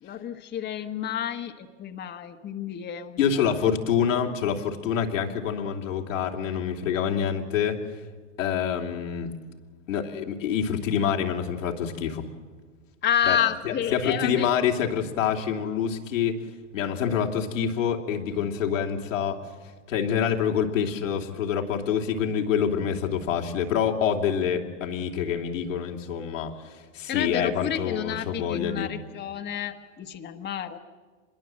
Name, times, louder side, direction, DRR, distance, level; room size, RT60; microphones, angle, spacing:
voice 1, 0.0-3.5 13.0-14.5 27.1-30.8, left 9 dB, 25° left, 6 dB, 1.3 m, -30 dB
voice 2, 3.2-7.8 8.4-9.3 9.9-12.3 13.3-13.4 13.6-16.4 16.7-19.4 19.9-28.9, left 8 dB, 85° left, 2 dB, 2.9 m, -26 dB
25.5 x 21.5 x 7.5 m, 1.4 s
hypercardioid pair, 110°, 38 cm